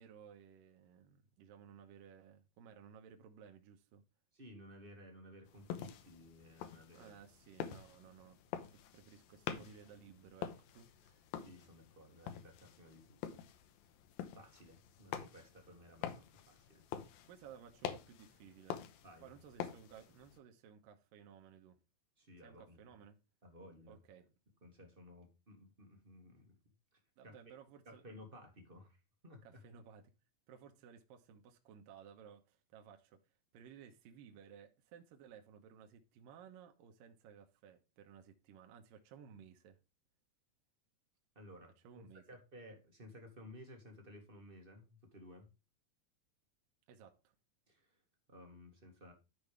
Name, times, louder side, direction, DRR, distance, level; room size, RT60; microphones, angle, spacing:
voice 1, 0.0-4.0 6.9-8.4 8.7-11.2 17.3-18.8 19.2-21.8 22.4-23.2 23.9-24.3 27.2-28.0 29.4-30.1 30.5-33.2 33.5-39.8 41.8-42.2 46.9-47.4, right 8 dB, 75° right, 2.7 m, -58 dB
voice 2, 4.3-7.1 11.4-13.4 14.3-16.8 19.0-19.3 22.2-22.9 23.4-24.0 24.6-26.6 26.9-27.3 27.8-29.6 41.3-45.5 47.7-48.0 48.3-49.1, left 1 dB, 35° right, 0.8 m, -57 dB
sound 1, 5.5-20.4, left 9 dB, 80° left, 2.7 m, -47 dB
12.5 x 5.2 x 3.4 m
omnidirectional pair, 4.3 m